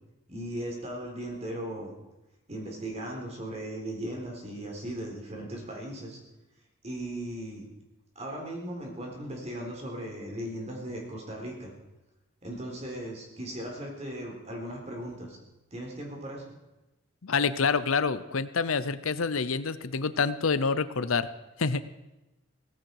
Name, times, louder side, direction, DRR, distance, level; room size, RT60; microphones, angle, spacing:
voice 1, 0.3-1.9 2.5-6.2 6.8-7.6 8.2-11.7 12.4-15.4 15.7-16.4, right 1 dB, 30° right, 0 dB, 4.1 m, -37 dB
voice 2, 17.2-21.3 21.6-21.9, left 5 dB, 80° left, 14 dB, 0.8 m, -27 dB
17.5 x 15.0 x 4.8 m, 1.0 s
head